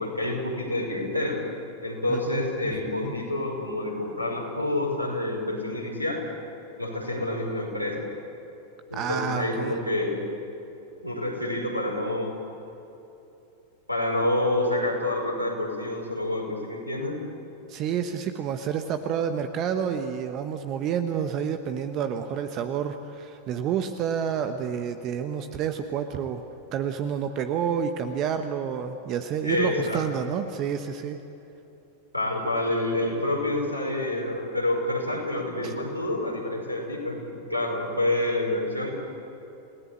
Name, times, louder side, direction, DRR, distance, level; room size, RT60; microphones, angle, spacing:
voice 1, 0.0-1.4 1.8-6.2 6.8-8.0 8.9-10.3 11.0-12.3 13.9-17.2 29.4-30.0 32.1-38.9, left 1 dB, 90° right, 1 dB, 5.6 m, -28 dB
voice 2, 2.1-2.7 3.0-3.1 8.9-9.8 17.7-26.4 26.7-31.2 35.6-35.7, right 8 dB, 35° right, 7 dB, 1.3 m, -29 dB
29.5 x 18.0 x 8.5 m, 2.9 s
figure-of-eight pair, 90°, 0 cm